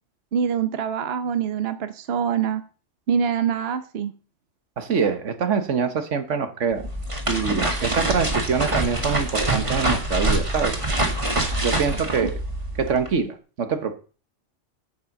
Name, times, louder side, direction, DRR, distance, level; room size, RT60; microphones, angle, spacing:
voice 1, 0.3-2.6 3.1-4.1, right 7 dB, 60° right, 10 dB, 1.1 m, -24 dB
voice 2, 4.8-6.9 7.3-10.8 11.6-12.3 12.8-13.9, right 6 dB, 85° right, 9 dB, 1.6 m, -25 dB
sound 1, 6.7-13.1, right 1 dB, 25° right, 2.1 m, -25 dB
9.2 x 7.4 x 6.5 m, 0.37 s
omnidirectional pair, 1.2 m